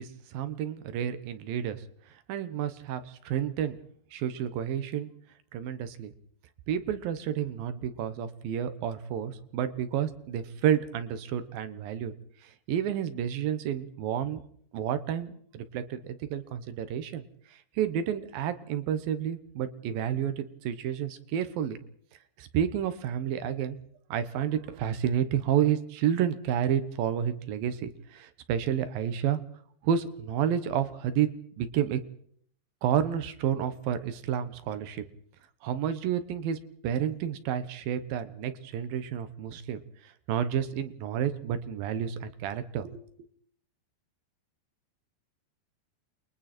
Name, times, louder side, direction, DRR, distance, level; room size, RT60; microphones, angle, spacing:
voice 1, 0.0-1.8 2.3-3.8 4.1-5.1 5.5-6.1 6.7-12.1 12.4-14.4 14.7-17.2 17.8-21.8 22.4-23.8 24.1-29.4 29.8-32.0 32.8-35.0 35.6-43.0, right 9 dB, 65° right, 12 dB, 2.7 m, -30 dB
29.5 x 22.5 x 4.4 m, 0.62 s
omnidirectional pair, 5.0 m